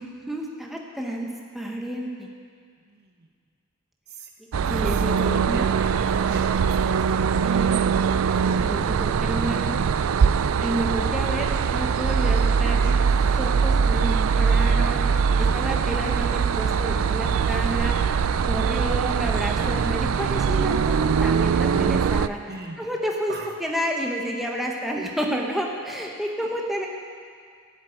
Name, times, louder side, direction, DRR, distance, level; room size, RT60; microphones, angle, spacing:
voice 1, 0.0-2.3 4.7-5.6 7.4-7.9 8.4-9.7 10.6-13.1 13.4-15.1 15.4-17.9 18.5-22.4 22.8-23.3 23.6-26.9, equal, ahead, -1 dB, 1.1 m, -30 dB
voice 2, 2.8-3.3 4.1-4.3 4.6-7.2 15.3-15.8 22.5-22.9 23.3-23.5 26.4-26.5, right 2 dB, 50° right, 2 dB, 1.3 m, -40 dB
sound 1, 4.5-22.3, right 6 dB, 75° right, 0.4 m, -22 dB
sound 2, 12.1-21.7, left 1 dB, 65° left, 3.2 m, -49 dB
12.0 x 8.3 x 9.2 m, 2.1 s
head